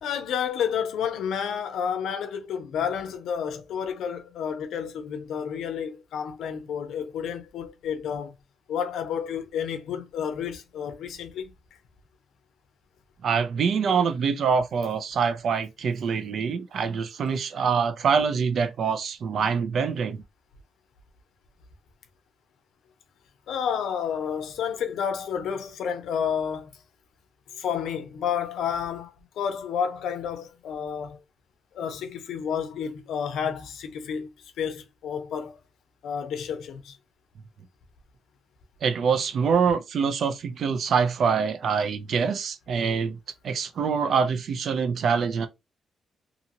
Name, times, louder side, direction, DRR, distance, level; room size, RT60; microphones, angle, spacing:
voice 1, 0.0-8.3 8.7-11.5 23.5-26.7 27.6-31.2 31.7-34.3 34.6-35.6 36.0-37.0, left 7 dB, 85° left, 0.7 m, -30 dB
voice 2, 13.2-20.2 38.8-43.2 43.4-45.5, right 6 dB, 55° right, 0.4 m, -25 dB
2.8 x 2.6 x 2.6 m
cardioid pair, 150°, 0 cm